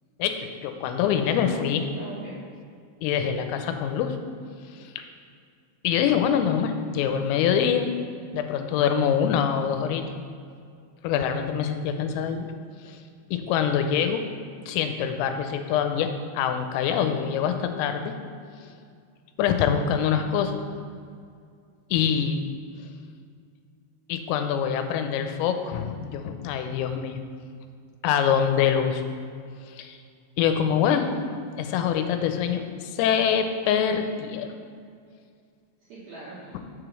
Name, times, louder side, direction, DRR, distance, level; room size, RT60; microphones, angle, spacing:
voice 1, 0.2-1.8 3.0-4.2 4.7-5.0 5.8-7.9 8.3-10.0 11.0-12.5 12.9-13.0 13.3-14.2 14.7-18.1 18.6-18.7 19.4-20.6 21.9-22.4 24.1-27.2 28.0-29.0 29.7-30.0 30.4-31.1 31.6-34.5, left 8 dB, 85° left, 7 dB, 3.2 m, -25 dB
voice 2, 1.9-2.5 30.8-31.2 35.8-36.6, right 3 dB, 80° right, -7 dB, 2.2 m, -39 dB
7.3 x 4.9 x 6.2 m, 2.3 s
omnidirectional pair, 5.9 m